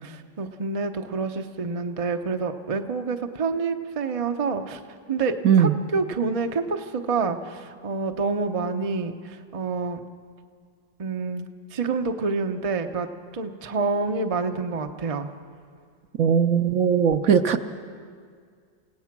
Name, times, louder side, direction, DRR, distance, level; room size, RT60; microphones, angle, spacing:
voice 1, 0.0-4.8 5.1-10.0 11.0-13.1 13.3-15.3, right 4 dB, 35° right, 6 dB, 0.5 m, -28 dB
voice 2, 16.2-17.6, right 7 dB, 60° right, 8 dB, 1.0 m, -19 dB
28.5 x 17.0 x 6.0 m, 2.1 s
omnidirectional pair, 1.8 m